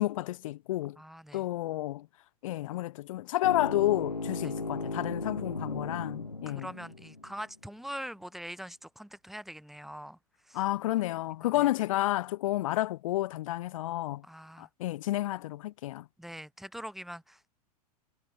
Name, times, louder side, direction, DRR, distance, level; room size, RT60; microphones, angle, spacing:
voice 1, 0.0-1.0 1.3-2.1 2.4-6.7 10.5-14.2 14.6-16.1, left 16 dB, 55° left, 5.0 m, -30 dB
voice 2, 1.0-1.5 4.4-4.5 6.5-10.2 10.4-10.6 11.4-11.7 14.2-14.7 16.2-17.5, equal, ahead, 4.5 m, -43 dB
sound 1, 3.4-7.4, left 3 dB, 90° left, 1.5 m, -36 dB
figure-of-eight pair, 95°, 20 cm